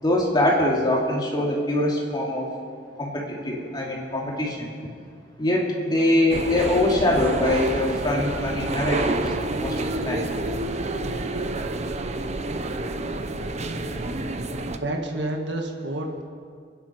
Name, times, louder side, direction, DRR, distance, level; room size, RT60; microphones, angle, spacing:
voice 1, 0.0-2.5 3.0-4.7 5.4-10.3, left 1 dB, 25° left, -2 dB, 2.9 m, -23 dB
sound 1, 6.3-14.8, right 2 dB, 40° right, 0.8 m, -29 dB
voice 2, 14.8-16.2, right 1 dB, 75° right, 1 dB, 1.9 m, -29 dB
29.5 x 10.5 x 4.7 m, 2.1 s
head